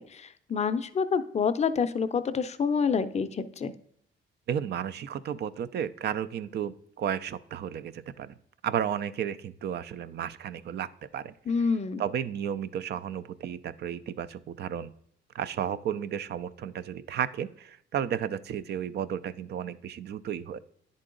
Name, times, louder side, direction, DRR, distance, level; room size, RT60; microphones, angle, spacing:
voice 1, 0.1-3.7 11.5-12.0, left 5 dB, 35° left, 11 dB, 0.5 m, -27 dB
voice 2, 4.5-8.3 8.6-11.3 12.0-14.9 15.3-20.6, right 9 dB, 55° right, 14 dB, 0.4 m, -33 dB
9.9 x 3.8 x 3.8 m, 0.70 s
cardioid pair, 90°, 20 cm